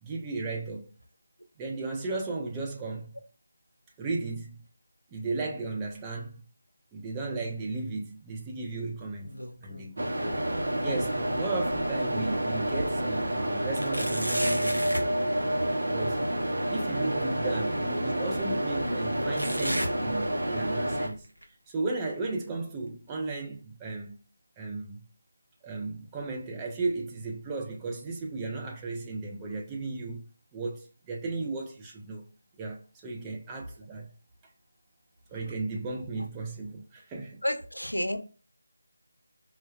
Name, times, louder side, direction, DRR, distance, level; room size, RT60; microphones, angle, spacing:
voice 1, 0.0-0.9 1.6-3.1 4.0-4.6 5.1-6.4 6.9-10.1 10.8-15.0 15.9-16.3 16.7-21.2 21.7-24.2 24.6-25.0 25.6-30.2 30.5-32.3 32.6-34.1 35.3-37.4, right 3 dB, 10° right, 0.4 m, -35 dB
sound 1, 9.0-9.9 10.3-12.2 12.7-12.8 13.7-15.1 16.8-16.9 17.9-18.0 19.3-20.7 21.1-21.4 22.1-22.2 23.1-23.2, equal, 90° right, 0.9 m, -36 dB
sound 2, 10.0-21.1, right 1 dB, 60° right, 0.8 m, -29 dB
voice 2, 37.4-38.2, left 1 dB, 85° left, 0.6 m, -30 dB
3.5 x 2.2 x 2.2 m
figure-of-eight pair, 160°, 0 cm